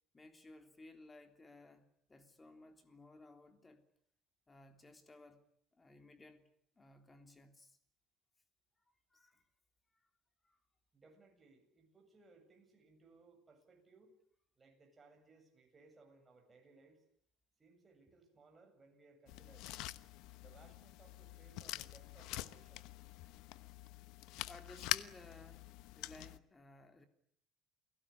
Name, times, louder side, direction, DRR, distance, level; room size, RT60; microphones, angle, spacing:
voice 1, 0.1-3.8 4.5-5.4 5.7-6.5 6.8-7.8 9.1-9.4 10.0-10.1 10.4-10.6 24.5-27.1, left 2 dB, 15° left, 3.3 m, -58 dB
voice 2, 10.9-14.1 14.6-17.0 17.6-19.7 20.4-22.8, right 3 dB, 20° right, 7.9 m, -64 dB
sound 1, 19.3-26.4, left 16 dB, 70° left, 1.1 m, -45 dB
29.0 x 17.5 x 10.0 m
cardioid pair, 140°, 0 cm